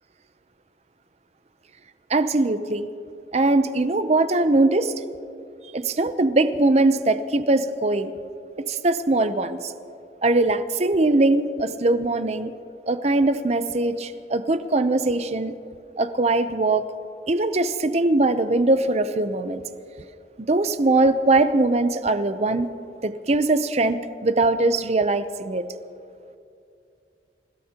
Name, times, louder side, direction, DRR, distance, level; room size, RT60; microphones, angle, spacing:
voice 1, 2.1-2.9 3.3-4.9 5.7-8.1 8.7-9.7 10.2-12.5 12.9-15.5 16.0-16.9 17.3-19.6 20.5-22.7 23.0-25.6, right 2 dB, 35° right, 11 dB, 0.7 m, -21 dB
27.5 x 16.5 x 2.9 m, 2.5 s
head